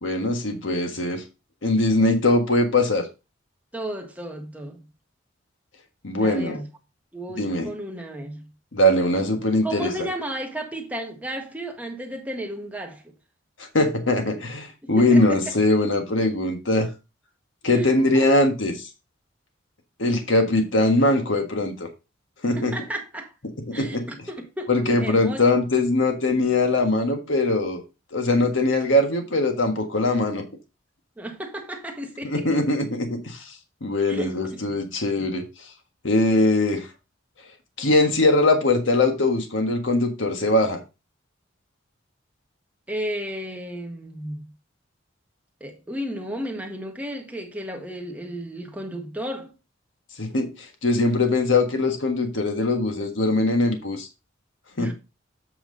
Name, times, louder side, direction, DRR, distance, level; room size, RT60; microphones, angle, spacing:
voice 1, 0.0-1.2 1.6-3.1 6.0-6.6 7.4-7.7 8.7-9.9 13.7-16.9 17.6-18.9 20.0-21.9 22.4-22.7 23.7-24.0 24.7-27.8 28.1-30.4 32.2-33.5 33.8-35.4 36.0-36.9 37.8-40.8 50.2-54.1 54.8-54.9, left 2 dB, 75° left, 1.5 m, -21 dB
voice 2, 3.7-4.9 6.2-6.7 7.1-8.5 9.6-13.0 14.8-15.4 17.7-17.9 18.1-18.3 22.6-23.3 23.7-25.5 31.2-32.5 34.1-34.8 35.2-35.3 42.9-44.5 45.6-49.5 54.8-54.9, right 1 dB, 10° right, 1.5 m, -33 dB
8.1 x 5.9 x 3.9 m
head